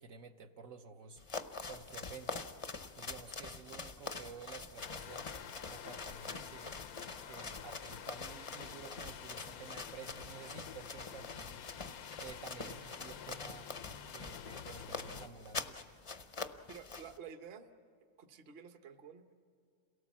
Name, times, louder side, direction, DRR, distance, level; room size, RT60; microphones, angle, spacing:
voice 1, 0.0-1.4 1.7-2.5 3.0-6.9 7.3-11.9 12.2-13.7 14.0-15.8, right 5 dB, 65° right, 4 dB, 1.2 m, -51 dB
sound 1, 1.2-17.2, left 4 dB, 35° left, 0.5 m, -45 dB
sound 2, 4.8-15.3, left 8 dB, 90° left, 1.2 m, -49 dB
voice 2, 12.6-13.1 16.7-17.7 18.2-19.3, right 7 dB, 45° right, 8 dB, 1.1 m, -51 dB
28.0 x 18.0 x 7.3 m, 2.4 s
omnidirectional pair, 1.5 m